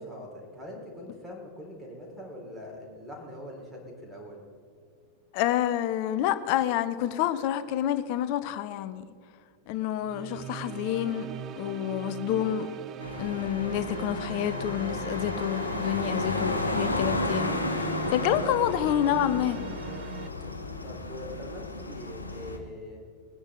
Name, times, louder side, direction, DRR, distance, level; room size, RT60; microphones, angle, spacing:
voice 1, 0.0-4.4 20.8-23.0, left 1 dB, 5° right, -2 dB, 4.1 m, -43 dB
voice 2, 5.3-9.0 9.7-11.3 11.6-12.7 13.2-19.6, left 11 dB, 45° left, 12 dB, 0.8 m, -28 dB
sound 1, 10.0-20.3, right 9 dB, 30° right, 0.6 m, -40 dB
sound 2, 13.0-22.6, left 2 dB, 80° left, 1.1 m, -32 dB
20.5 x 10.0 x 3.8 m, 2.1 s
figure-of-eight pair, 90°, 0 cm